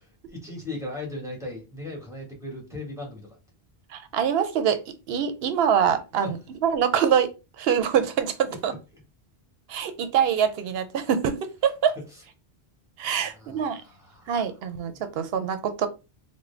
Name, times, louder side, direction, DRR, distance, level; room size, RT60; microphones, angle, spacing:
voice 1, 0.0-3.4 6.1-6.3 13.1-14.5 14.9-15.0, left 2 dB, 5° right, 1.2 m, -38 dB
voice 2, 3.9-4.8 5.1-6.4 6.6-7.3 7.6-8.7 9.7-11.9 13.0-13.8 14.3-15.9, right 8 dB, 75° right, 0.8 m, -24 dB
3.6 x 2.1 x 3.3 m
omnidirectional pair, 1.0 m